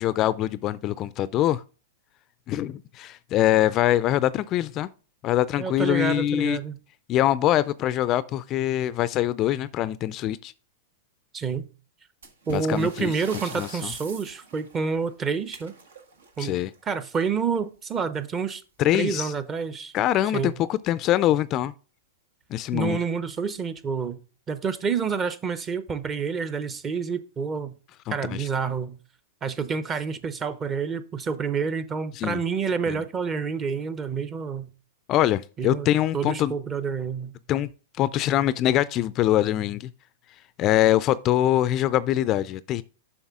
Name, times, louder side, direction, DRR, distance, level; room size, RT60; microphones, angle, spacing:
voice 1, 0.0-1.6 2.5-4.9 5.2-6.6 7.1-10.5 12.5-13.1 13.5-13.9 16.4-16.7 18.8-19.3 19.9-21.7 22.5-23.0 28.1-28.5 32.1-32.4 32.9-33.0 35.1-36.5 37.5-37.7 38.0-39.9 40.6-42.8, left 13 dB, 35° left, 0.3 m, -23 dB
voice 2, 5.6-6.8 11.3-11.7 12.5-15.7 16.4-16.6 16.9-18.6 18.9-19.9 20.3-20.6 22.7-24.2 24.5-27.8 28.1-29.0 29.4-34.7 35.6-35.9 36.1-37.3, right 5 dB, 25° right, 0.7 m, -28 dB
sound 1, 12.2-17.6 18.9-19.0 19.3-19.4 20.1-20.2 20.8-21.1, right 3 dB, 90° right, 1.4 m, -44 dB
7.2 x 5.6 x 3.6 m
hypercardioid pair, 125°, 0 cm